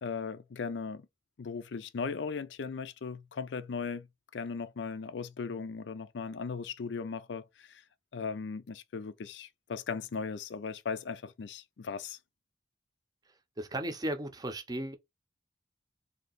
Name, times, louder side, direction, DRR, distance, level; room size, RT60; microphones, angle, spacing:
voice 1, 0.0-1.1 1.4-4.1 4.3-7.8 8.1-12.2, left 5 dB, 75° left, 0.4 m, -37 dB
voice 2, 13.6-14.9, right 1 dB, 20° right, 0.6 m, -35 dB
3.3 x 2.7 x 3.9 m
head